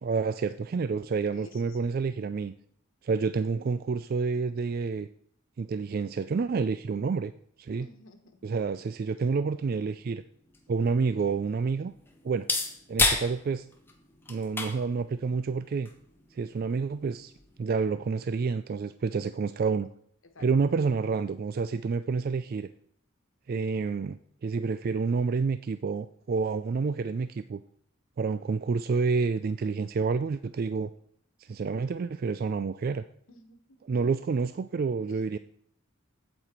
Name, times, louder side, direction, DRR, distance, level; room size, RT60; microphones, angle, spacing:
voice 1, 0.0-2.5 3.0-5.1 5.6-7.3 7.6-7.9 8.4-10.2 10.7-11.9 12.2-12.5 12.9-13.7 14.3-15.9 16.3-17.3 17.6-19.9 20.4-22.7 23.5-27.6 28.2-30.9 31.4-33.0 33.8-35.4, right 4 dB, 45° right, 13 dB, 0.3 m, -29 dB
voice 2, 1.3-1.9 7.8-8.5 20.3-20.5 33.3-33.8 35.1-35.3, left 3 dB, 70° left, 7 dB, 1.3 m, -52 dB
sound 1, 10.0-18.0, left 3 dB, 10° left, 1.1 m, -34 dB
8.7 x 8.2 x 4.4 m, 0.66 s
head